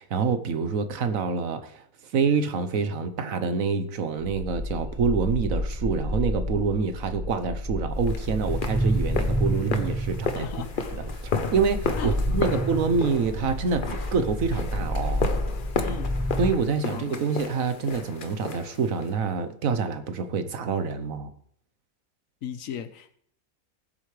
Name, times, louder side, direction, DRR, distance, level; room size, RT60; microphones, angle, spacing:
voice 1, 0.0-10.5 10.9-11.1 11.5-15.3 16.4-21.3, right 5 dB, 75° right, 1.3 m, -27 dB
sound 1, 4.2-16.5, equal, 15° right, 1.1 m, -29 dB
sound 2, 8.0-19.2, left 4 dB, 45° left, 0.9 m, -33 dB
voice 2, 10.3-10.8 12.0-12.6 15.8-16.2 16.9-17.2 22.4-23.2, left 7 dB, 70° left, 1.2 m, -36 dB
19.5 x 8.0 x 3.3 m
omnidirectional pair, 1.5 m